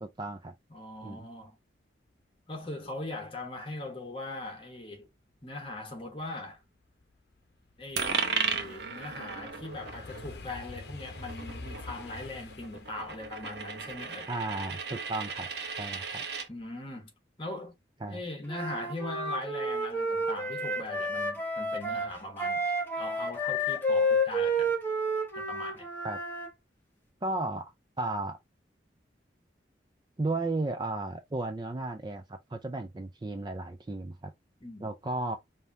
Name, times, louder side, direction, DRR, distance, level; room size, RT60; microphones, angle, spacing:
voice 1, 0.0-0.5 1.0-1.3 14.3-15.5 15.8-16.2 18.0-18.2 26.0-26.2 27.2-28.4 30.2-34.3 34.8-35.4, right 2 dB, 25° right, 0.4 m, -34 dB
voice 2, 0.7-1.6 2.5-5.1 5.4-6.6 7.8-14.3 16.5-17.1 17.4-17.7 18.1-24.7 25.3-25.9 34.6-34.9, left 2 dB, 30° left, 1.3 m, -40 dB
sound 1, 6.8-15.8 16.2-16.6, left 3 dB, 60° left, 0.8 m, -47 dB
Coin (dropping), 8.0-16.5, right 5 dB, 65° right, 1.0 m, -36 dB
Wind instrument woodwind instrument, 18.5-26.5, equal, 10° left, 1.2 m, -30 dB
5.2 x 2.8 x 2.7 m
head